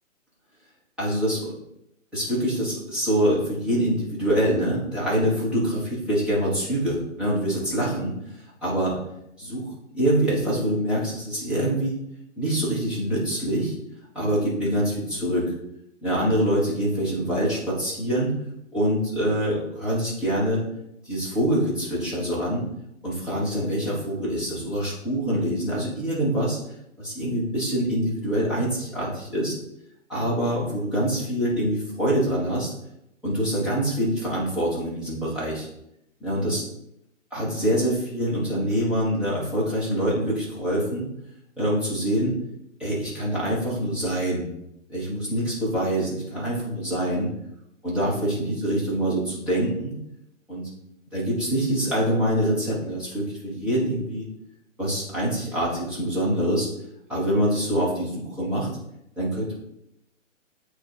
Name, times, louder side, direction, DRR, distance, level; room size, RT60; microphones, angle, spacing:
voice 1, 1.0-1.5 2.1-8.1 8.6-9.0 9.4-12.0 12.4-13.7 14.1-15.5 16.0-18.3 18.7-20.6 21.0-22.7 23.0-26.6 27.0-29.5 30.1-32.7 33.2-35.7 36.2-36.6 37.3-41.1 41.6-42.3 42.8-44.4 44.9-47.3 47.8-50.0 50.5-50.7 51.1-54.3 54.8-56.7 57.1-58.7 59.2-59.5, right 1 dB, ahead, -9 dB, 1.2 m, -25 dB
7.8 x 3.1 x 4.5 m, 0.81 s
hypercardioid pair, 160°, 39 cm